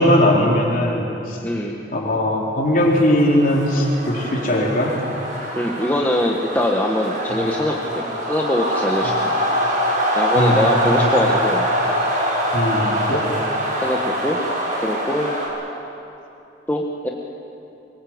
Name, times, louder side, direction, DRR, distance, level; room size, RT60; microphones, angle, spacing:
voice 1, 0.0-1.4 1.9-4.9 10.3-11.1 12.5-13.2, left 1 dB, 50° left, -2 dB, 4.0 m, -19 dB
voice 2, 1.4-1.8 5.6-9.3 10.1-11.7 13.4-14.4 14.8-15.3 16.7-17.1, left 1 dB, 10° left, -1 dB, 1.5 m, -23 dB
sound 1, 2.8-15.5, equal, 45° right, 7.1 m, -24 dB
24.0 x 24.0 x 8.0 m, 2.8 s
head